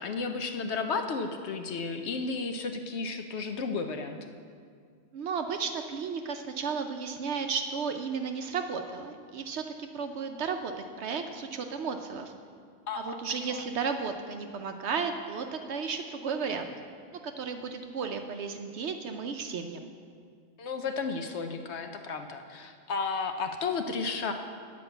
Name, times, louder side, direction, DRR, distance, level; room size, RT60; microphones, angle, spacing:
voice 1, 0.0-4.2 12.9-13.2 13.5-13.6 20.6-24.3, left 4 dB, 60° left, 6 dB, 0.8 m, -33 dB
voice 2, 5.1-12.3 13.0-16.7 17.2-19.9, right 5 dB, 65° right, 6 dB, 0.8 m, -34 dB
9.8 x 5.2 x 7.8 m, 2.1 s
omnidirectional pair, 1.4 m